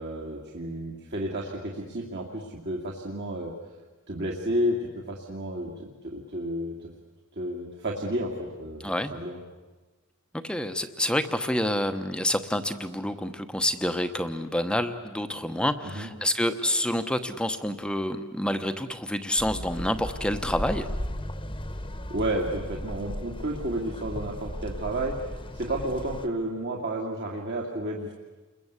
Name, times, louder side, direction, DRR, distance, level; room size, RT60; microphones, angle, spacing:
voice 1, 0.0-3.5 4.1-6.9 7.3-9.4 15.8-16.1 22.1-25.2 25.5-28.1, right 1 dB, 50° right, -1 dB, 2.5 m, -31 dB
voice 2, 10.3-20.8, left 1 dB, 5° left, 8 dB, 1.0 m, -28 dB
sound 1, 19.4-26.3, equal, 25° left, 1.3 m, -36 dB
29.5 x 22.0 x 8.3 m, 1.2 s
head